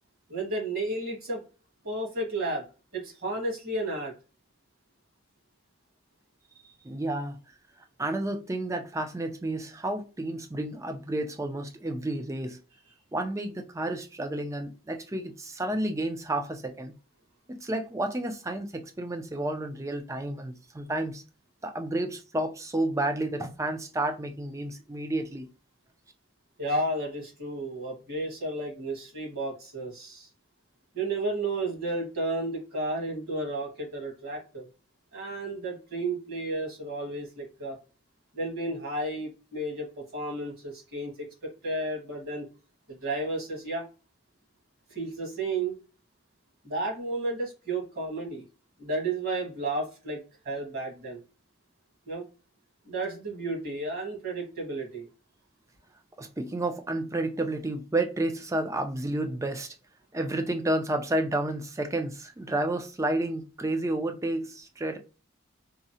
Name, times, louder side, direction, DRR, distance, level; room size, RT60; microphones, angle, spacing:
voice 1, 0.3-1.4 1.8-2.7 2.9-4.1 26.6-30.3 30.9-34.7 35.1-37.8 38.3-42.5 42.9-43.9 44.9-45.8 46.6-48.4 48.8-51.2 52.1-52.3 52.9-55.1, right 2 dB, 50° right, 1.7 m, -32 dB
voice 2, 6.8-7.4 8.0-12.6 13.1-16.9 17.5-21.2 21.6-25.5 56.2-59.7 60.1-65.0, right 1 dB, 15° right, 0.4 m, -31 dB
3.6 x 2.0 x 2.7 m
head